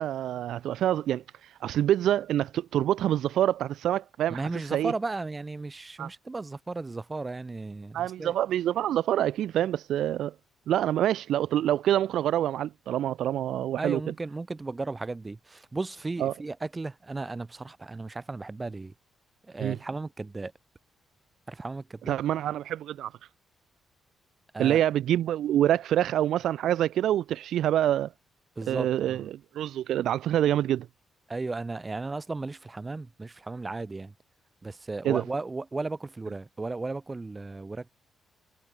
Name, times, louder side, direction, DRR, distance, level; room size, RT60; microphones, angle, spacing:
voice 1, 0.0-4.9 6.0-6.1 7.9-10.3 10.7-14.0 16.2-16.3 19.6-19.8 22.1-23.1 24.6-28.1 28.7-29.3 29.5-30.9 35.0-35.2, right 11 dB, 75° right, 0.4 m, -26 dB
voice 2, 4.3-8.3 13.8-18.9 19.4-20.5 21.5-22.2 24.5-24.8 28.6-29.3 31.3-34.1 34.6-37.9, right 3 dB, 15° right, 0.5 m, -35 dB
wide cardioid pair, 175°, 0 cm